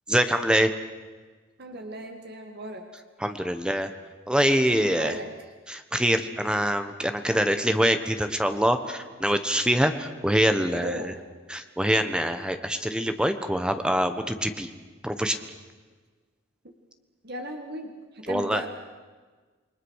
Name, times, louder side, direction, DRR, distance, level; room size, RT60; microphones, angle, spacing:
voice 1, 0.1-0.7 3.2-3.9 4.3-5.2 5.7-11.1 11.5-14.7 15.0-15.4 18.3-18.6, equal, 5° right, 8 dB, 1.3 m, -24 dB
voice 2, 1.6-2.8 4.7-5.3 10.7-11.2 17.2-18.7, right 1 dB, 50° right, 3 dB, 2.0 m, -36 dB
28.5 x 21.5 x 6.5 m, 1.4 s
head